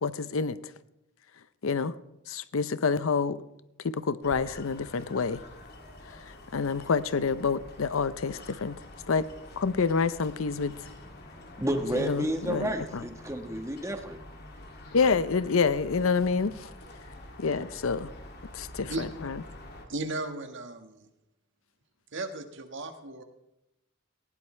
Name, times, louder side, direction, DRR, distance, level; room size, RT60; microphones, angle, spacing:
voice 1, 0.0-0.6 1.6-1.9 2.3-3.4 3.8-5.4 6.5-8.8 9.1-9.3 9.6-10.8 12.0-13.0 14.9-16.6 17.4-18.1 18.5-19.4, left 5 dB, 80° left, 15 dB, 0.6 m, -27 dB
sound 1, 4.2-19.9, left 1 dB, 50° left, 2.5 m, -47 dB
voice 2, 11.6-14.2, right 1 dB, 15° right, 5 dB, 1.3 m, -31 dB
voice 3, 19.9-21.1 22.1-23.2, right 2 dB, 60° right, 6 dB, 1.6 m, -35 dB
19.0 x 16.5 x 3.3 m, 0.89 s
head